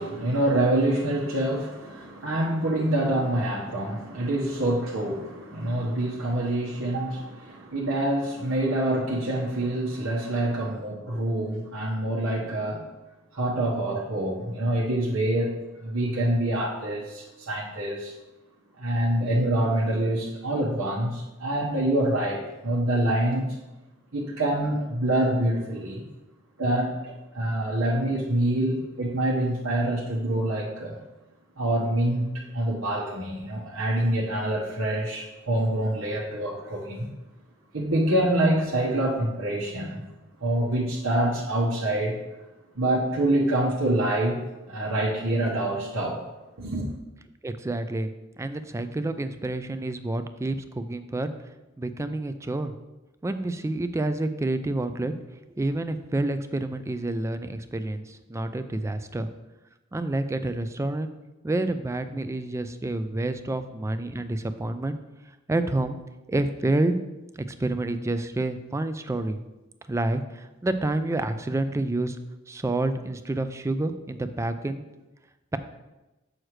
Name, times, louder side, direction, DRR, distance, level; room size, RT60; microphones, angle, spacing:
voice 1, 0.0-12.9 13.3-18.1 18.8-23.6 24.1-26.1 26.6-31.0 31.6-37.1 37.7-40.0 40.4-42.2 42.7-44.4 44.7-46.2 46.6-46.9, right 1 dB, 90° right, -5 dB, 1.2 m, -26 dB
voice 2, 47.4-48.1 48.4-51.3 51.8-52.7 53.2-55.1 55.6-59.3 59.9-61.1 61.4-65.0 65.5-66.0 66.3-66.9 67.6-69.4 69.9-72.2 72.5-74.8, right 2 dB, 15° right, 10 dB, 0.3 m, -28 dB
7.5 x 6.3 x 3.2 m, 1.0 s
head